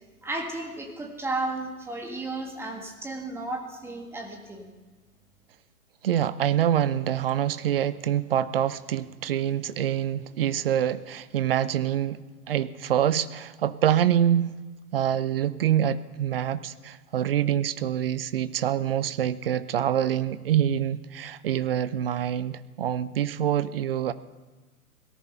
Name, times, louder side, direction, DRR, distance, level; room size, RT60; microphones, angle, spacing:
voice 1, 0.2-4.7, right 2 dB, 5° right, 3 dB, 1.6 m, -33 dB
voice 2, 6.0-14.5 14.9-24.1, right 10 dB, 40° right, 16 dB, 0.6 m, -26 dB
17.5 x 13.0 x 5.6 m, 1.3 s
figure-of-eight pair, 125°, 45 cm